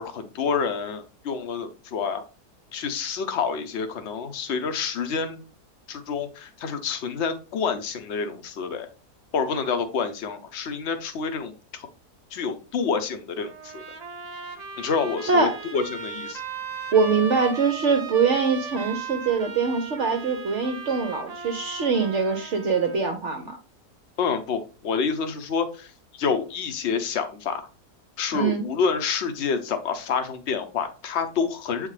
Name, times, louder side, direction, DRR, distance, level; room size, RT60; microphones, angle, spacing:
voice 1, 0.0-2.2 2.7-5.4 5.9-8.9 9.3-11.9 12.3-13.8 14.8-16.4 24.2-25.9 26.2-27.7 28.2-31.9, left 5 dB, 50° left, 8 dB, 0.9 m, -28 dB
Trumpet, 13.4-23.1, right 4 dB, 80° right, 0.3 m, -37 dB
voice 2, 15.3-15.6 16.9-23.6 28.3-28.6, right 5 dB, 60° right, 5 dB, 0.9 m, -23 dB
7.9 x 3.7 x 3.2 m, 0.34 s
omnidirectional pair, 1.7 m